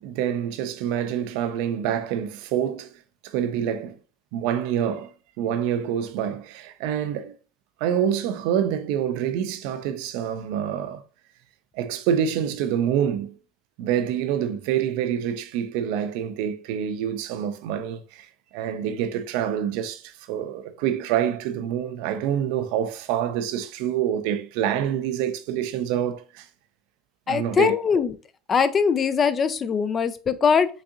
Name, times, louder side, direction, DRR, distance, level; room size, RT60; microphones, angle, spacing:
voice 1, 0.0-3.0 3.2-4.0 4.3-7.4 7.8-11.0 11.7-13.3 13.8-26.5 27.3-27.8, right 9 dB, 70° right, 0.4 m, -26 dB
voice 2, 27.3-28.1 28.5-30.7, left 6 dB, 35° left, 0.3 m, -21 dB
3.9 x 2.5 x 2.4 m
hypercardioid pair, 85°, 0 cm